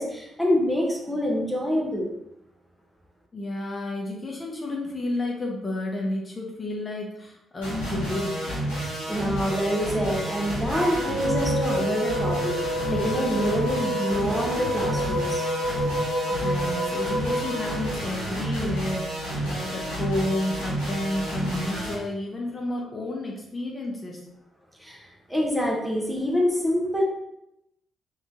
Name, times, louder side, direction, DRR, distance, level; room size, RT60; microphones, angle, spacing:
voice 1, 0.0-2.1 9.1-15.4 24.8-27.0, equal, 5° right, -2 dB, 1.0 m, -26 dB
voice 2, 3.3-8.5 16.3-24.2, left 2 dB, 35° left, -1 dB, 0.9 m, -31 dB
sound 1, 7.6-21.9, right 1 dB, 85° left, 1.3 m, -30 dB
sound 2, 10.7-17.9, equal, 30° right, 1.1 m, -29 dB
3.6 x 2.7 x 3.7 m, 0.84 s
hypercardioid pair, 40°, 0 cm